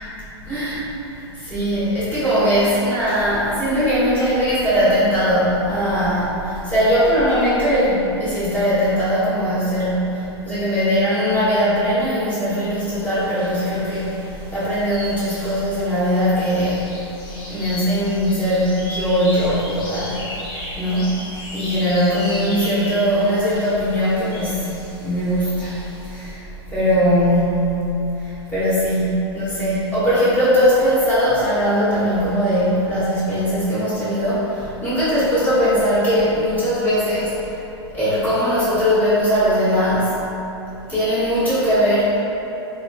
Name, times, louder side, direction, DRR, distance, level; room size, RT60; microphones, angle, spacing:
voice 1, 0.4-14.1 14.5-17.0 17.5-20.2 20.7-21.2 21.5-27.8 28.2-37.6 37.9-40.1 40.9-42.2, equal, 10° left, -13 dB, 1.3 m, -20 dB
sound 1, 13.0-26.3, left 1 dB, 50° left, 1.2 m, -36 dB
3.4 x 3.0 x 2.7 m, 3.0 s
hypercardioid pair, 110°, 14 cm